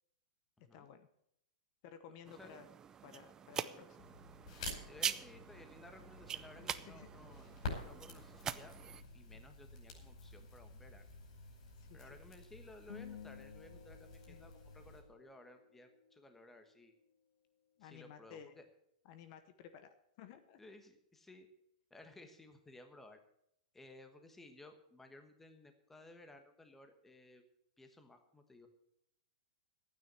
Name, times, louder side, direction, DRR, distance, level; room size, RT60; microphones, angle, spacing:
voice 1, 0.7-1.1 1.8-2.7 3.0-4.0 6.5-7.1 11.8-12.2 14.3-14.5 17.8-18.5 19.0-20.6, left 8 dB, 40° left, 10 dB, 0.9 m, -55 dB
voice 2, 2.3-2.6 4.7-7.5 7.8-11.1 11.9-16.9 17.8-18.6 20.6-21.5 21.9-23.2 23.7-27.4 27.8-28.7, left 2 dB, 5° left, 7 dB, 1.3 m, -58 dB
sound 1, 2.3-9.0, right 8 dB, 15° right, 0.5 m, -44 dB
Crackle, 4.0-15.0, left 3 dB, 60° left, 5.1 m, -50 dB
sound 2, 12.9-15.5, left 8 dB, 85° left, 2.1 m, -53 dB
12.0 x 9.3 x 7.5 m, 0.75 s
supercardioid pair, 160°, 4 cm